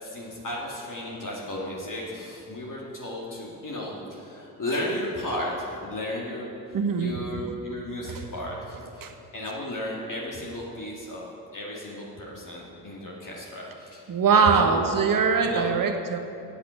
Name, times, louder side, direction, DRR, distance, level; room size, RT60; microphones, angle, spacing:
voice 1, 0.0-14.8 15.4-15.7, left 1 dB, 40° left, -4 dB, 2.2 m, -34 dB
voice 2, 6.7-7.2 9.0-9.1 14.1-16.2, right 5 dB, 45° right, 6 dB, 1.1 m, -22 dB
8.2 x 8.1 x 7.7 m, 2.8 s
hypercardioid pair, 40°, 46 cm